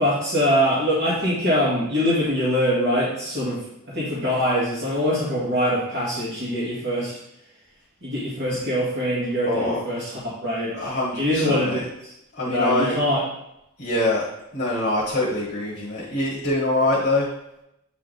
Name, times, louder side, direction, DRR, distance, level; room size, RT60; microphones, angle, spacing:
voice 1, 0.0-7.1 8.0-12.1 12.4-13.2, equal, 55° right, -8 dB, 1.9 m, -23 dB
voice 2, 9.5-9.8 10.7-11.8 12.3-13.0 13.8-14.2 14.5-17.3, left 2 dB, 40° left, -5 dB, 1.2 m, -24 dB
8.1 x 3.4 x 3.9 m, 0.83 s
head